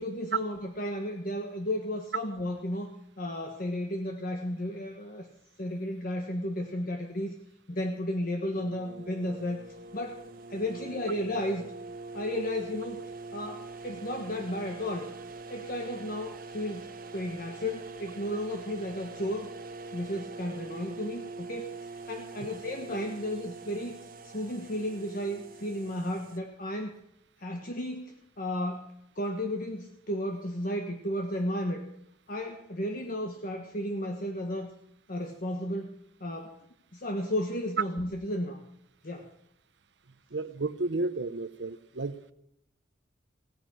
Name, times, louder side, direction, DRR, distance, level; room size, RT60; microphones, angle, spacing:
voice 1, 0.0-5.3 5.6-7.3 7.7-9.6 9.9-10.2 10.5-11.6 12.1-13.0 13.3-15.1 15.5-16.9 17.1-19.5 19.9-21.7 22.1-23.9 24.2-27.0 27.4-31.8 32.3-34.7 35.1-35.9 36.2-36.6 36.9-38.6 39.0-39.3, left 1 dB, 50° left, 3 dB, 1.4 m, -33 dB
sound 1, 8.5-26.4, right 3 dB, 50° right, 1.3 m, -44 dB
voice 2, 40.3-42.3, right 2 dB, 65° right, 14 dB, 0.8 m, -32 dB
17.0 x 9.8 x 6.4 m, 0.78 s
head